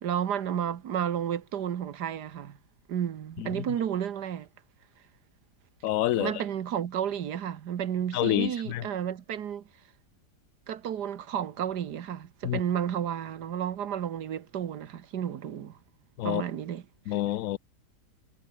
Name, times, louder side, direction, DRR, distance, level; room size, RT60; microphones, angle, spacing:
voice 1, 0.0-2.6 2.9-4.5 6.2-9.6 10.7-15.8 16.2-16.9, right 9 dB, 75° right, 1.7 m, -32 dB
voice 2, 5.8-6.3 8.1-8.8 12.4-12.6 16.2-16.4 17.1-17.6, left 14 dB, 65° left, 0.9 m, -27 dB
omnidirectional pair, 1.8 m